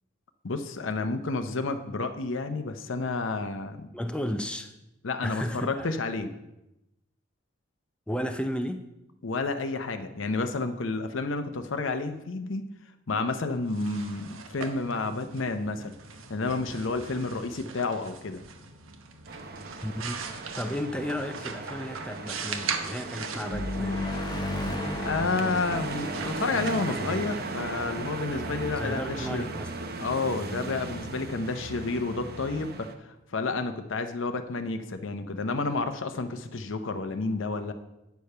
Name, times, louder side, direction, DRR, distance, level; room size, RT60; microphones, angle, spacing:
voice 1, 0.4-3.9 5.0-6.3 9.2-12.6 13.1-16.0 16.3-18.4 25.0-29.5 30.0-37.7, left 3 dB, 65° left, 7 dB, 0.7 m, -30 dB
voice 2, 3.9-4.7 5.2-6.0 8.1-8.9 19.8-20.2 20.6-24.1 28.7-29.9, equal, 5° left, 6 dB, 0.5 m, -33 dB
sound 1, 13.5-29.2, right 5 dB, 85° right, 1.0 m, -41 dB
sound 2, 19.3-32.9, right 3 dB, 50° right, 0.8 m, -37 dB
sound 3, 23.5-28.1, left 2 dB, 20° left, 0.9 m, -34 dB
9.2 x 6.7 x 5.5 m, 0.92 s
head